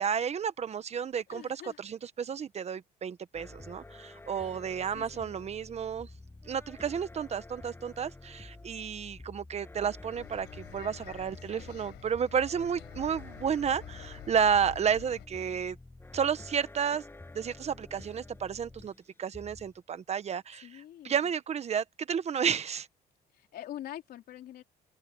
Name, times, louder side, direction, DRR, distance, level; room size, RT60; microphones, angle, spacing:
voice 1, 0.0-6.1 6.5-15.8 16.1-17.0 17.3-18.9 19.2-20.7 21.0-22.9, right 7 dB, 40° right, 1.1 m, -31 dB
voice 2, 1.3-1.8 4.3-4.6 4.9-5.3 20.6-21.3 23.3-24.6, left 12 dB, 65° left, 3.8 m, -45 dB
sound 1, 3.3-19.1 19.3-19.8, left 2 dB, 15° left, 6.6 m, -49 dB
Bus, 10.1-15.3, left 18 dB, 90° left, 6.7 m, -49 dB
cardioid pair, 110°, 17 cm